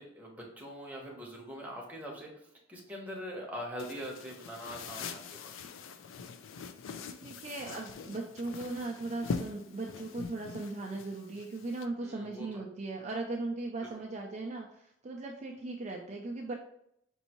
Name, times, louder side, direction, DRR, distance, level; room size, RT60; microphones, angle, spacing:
voice 1, 0.0-2.3 2.7-5.5 12.0-12.5 13.8-13.9, equal, 10° right, -2 dB, 0.9 m, -42 dB
sound 1, 3.8-11.9, left 5 dB, 85° left, 0.4 m, -43 dB
voice 2, 7.2-16.5, right 2 dB, 35° right, 0 dB, 0.4 m, -38 dB
5.3 x 2.7 x 2.9 m, 0.74 s
head